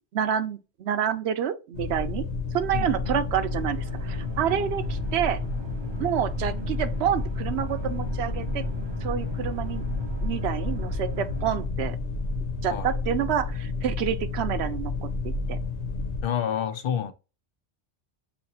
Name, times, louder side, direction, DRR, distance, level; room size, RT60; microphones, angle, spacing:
voice 1, 0.1-2.3 2.5-5.4 6.0-8.6 9.0-9.8 10.2-12.0 12.6-15.6, right 9 dB, 75° right, 0.9 m, -28 dB
sound 1, 1.7-16.2, left 3 dB, 85° left, 1.1 m, -31 dB
voice 2, 2.7-3.2 12.7-12.9 16.2-17.1, left 9 dB, 60° left, 0.7 m, -29 dB
sound 2, 3.3-11.6, right 3 dB, 50° right, 0.3 m, -40 dB
7.0 x 2.8 x 2.7 m
omnidirectional pair, 1.1 m